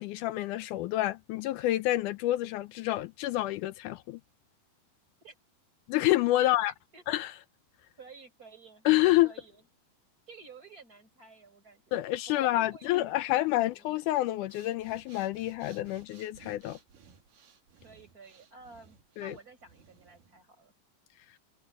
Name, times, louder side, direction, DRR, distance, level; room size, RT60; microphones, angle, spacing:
voice 1, 0.0-4.2 5.9-6.7 7.1-7.3 8.9-9.3 11.9-16.8 19.2-19.3, left 16 dB, 80° left, 2.0 m, -28 dB
voice 2, 6.4-7.0 8.0-8.9 9.2-9.6 10.3-13.1 13.4-13.8 17.8-20.7, right 4 dB, 25° right, 5.9 m, -52 dB
Breathing, 14.4-20.4, right 6 dB, 75° right, 4.1 m, -58 dB
omnidirectional pair, 3.9 m